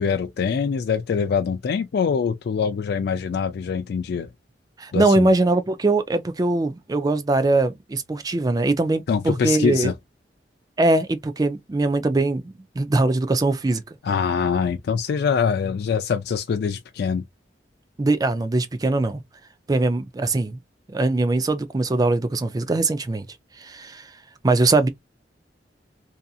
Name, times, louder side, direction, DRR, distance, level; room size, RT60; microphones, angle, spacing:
voice 1, 0.0-4.3 4.9-5.3 9.1-9.9 14.0-17.2, left 6 dB, 65° left, 0.3 m, -24 dB
voice 2, 4.8-9.9 10.8-13.8 18.0-19.2 19.7-20.6 20.9-23.3 23.6-24.1 24.4-24.9, right 2 dB, 20° right, 0.4 m, -21 dB
2.7 x 2.4 x 2.3 m
head